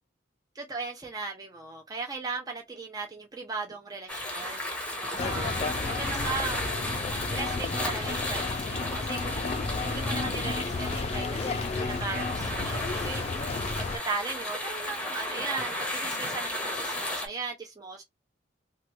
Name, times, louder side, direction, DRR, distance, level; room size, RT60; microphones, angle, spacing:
voice 1, 0.5-4.6 5.2-6.9 7.3-13.3 13.8-18.0, right 4 dB, 20° right, 0.5 m, -37 dB
sound 1, 4.1-17.3, left 1 dB, 5° left, 0.9 m, -34 dB
sound 2, 5.2-14.0, left 3 dB, 35° left, 0.3 m, -32 dB
2.9 x 2.2 x 3.0 m
head